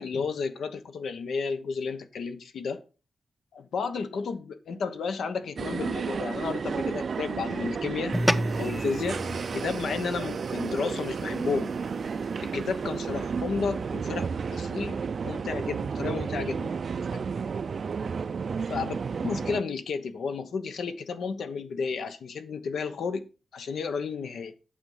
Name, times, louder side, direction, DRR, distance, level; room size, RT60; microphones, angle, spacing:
voice 1, 0.0-2.8 3.5-8.2 8.6-9.2 9.5-12.1 12.5-16.7 17.1-17.2 18.7-19.0 19.2-24.5, left 5 dB, 90° left, 1.1 m, -32 dB
sound 1, 5.6-19.6, right 5 dB, 50° right, 0.4 m, -32 dB
sound 2, 8.1-12.8, equal, ahead, 0.5 m, -32 dB
8.9 x 6.7 x 5.5 m
wide cardioid pair, 145°, 0 cm